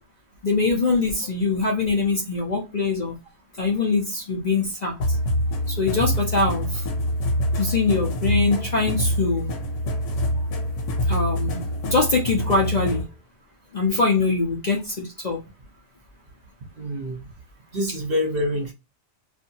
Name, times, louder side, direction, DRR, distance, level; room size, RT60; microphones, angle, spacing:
voice 1, 0.4-3.1 3.6-5.2 5.7-6.8 7.6-9.5 11.1-11.6 11.9-13.0 13.7-15.4, left 3 dB, 45° left, -1 dB, 0.6 m, -23 dB
sound 1, 5.0-13.0, equal, 80° left, 1.1 m, -25 dB
voice 2, 16.8-17.2 17.7-18.7, left 1 dB, 55° right, 1 dB, 1.0 m, -26 dB
2.7 x 2.5 x 2.7 m, 0.26 s
omnidirectional pair, 1.2 m